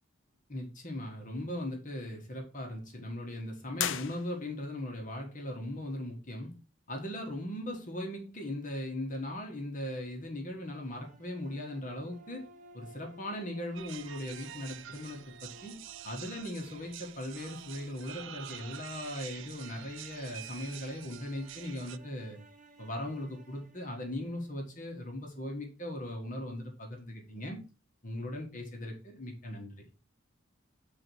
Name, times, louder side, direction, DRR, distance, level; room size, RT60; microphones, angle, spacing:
voice 1, 0.5-6.5 6.9-12.5 12.7-22.4 22.8-27.6 28.0-29.8, left 1 dB, 40° left, 2 dB, 1.5 m, -39 dB
sound 1, 3.7-4.8, left 10 dB, 75° left, 0.5 m, -36 dB
sound 2, 10.8-24.9, right 1 dB, 40° right, 0.9 m, -57 dB
sound 3, 13.7-22.0, right 11 dB, 70° right, 0.4 m, -47 dB
7.5 x 4.1 x 4.6 m, 0.33 s
head